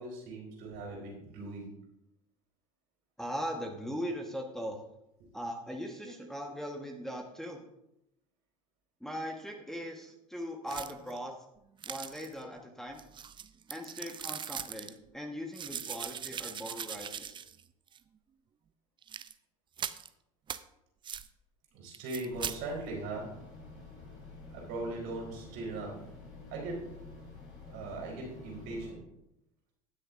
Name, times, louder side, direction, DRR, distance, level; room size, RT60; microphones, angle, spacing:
voice 1, 0.0-1.7 5.2-5.3 21.7-23.3 24.5-25.9 26.5-26.8 27.7-29.0, right 2 dB, 60° right, -2 dB, 4.1 m, -39 dB
voice 2, 3.2-4.8 5.3-7.6 9.0-11.3 11.8-13.0 13.7-17.3, equal, ahead, 1 dB, 1.4 m, -39 dB
sound 1, 10.7-11.2 11.8-12.4 13.0-14.9 15.5-17.6 17.9-18.0 19.0-19.3 19.8-20.1 20.5-20.6 21.0-21.3 21.9-22.6, right 8 dB, 25° right, 0.5 m, -40 dB
sound 2, 22.3-28.9, left 3 dB, 55° left, 3.7 m, -49 dB
19.5 x 6.5 x 2.6 m, 0.83 s
hypercardioid pair, 70°, 18 cm